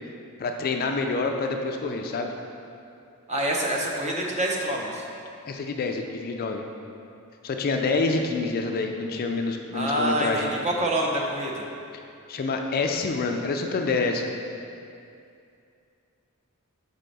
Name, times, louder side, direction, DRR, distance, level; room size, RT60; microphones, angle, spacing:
voice 1, 0.4-2.3 5.5-6.6 7.4-10.5 12.3-14.3, left 3 dB, 45° left, 4 dB, 0.4 m, -27 dB
voice 2, 3.3-5.1 9.7-11.6, right 1 dB, 30° right, -1 dB, 0.7 m, -26 dB
4.5 x 4.1 x 5.2 m, 2.5 s
head